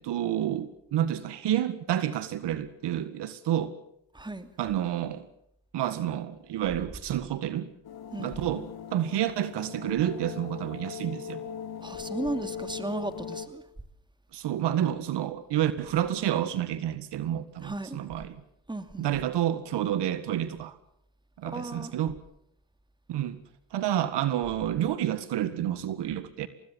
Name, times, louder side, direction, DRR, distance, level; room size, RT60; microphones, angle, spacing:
voice 1, 0.0-3.7 4.6-5.3 5.7-7.7 8.2-11.4 14.3-18.4 19.0-20.8 21.4-22.2 23.1-23.4 23.7-26.5, right 11 dB, 65° right, 1.8 m, -29 dB
voice 2, 4.1-4.5 8.1-8.3 11.8-13.6 17.6-18.0 18.7-19.1 21.5-21.9, right 2 dB, 10° right, 2.6 m, -35 dB
sound 1, 7.8-13.5, left 8 dB, 55° left, 3.8 m, -39 dB
25.0 x 19.5 x 7.4 m
supercardioid pair, 70°, 44 cm